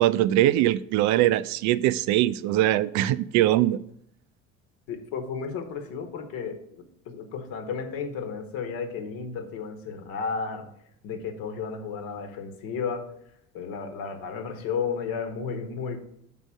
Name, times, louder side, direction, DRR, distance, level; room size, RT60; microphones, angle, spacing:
voice 1, 0.0-3.8, right 14 dB, 50° right, 0.4 m, -22 dB
voice 2, 4.9-10.7 11.0-13.1 13.5-16.0, left 6 dB, 60° left, 1.3 m, -33 dB
7.3 x 3.8 x 6.1 m
figure-of-eight pair, 60°, 40 cm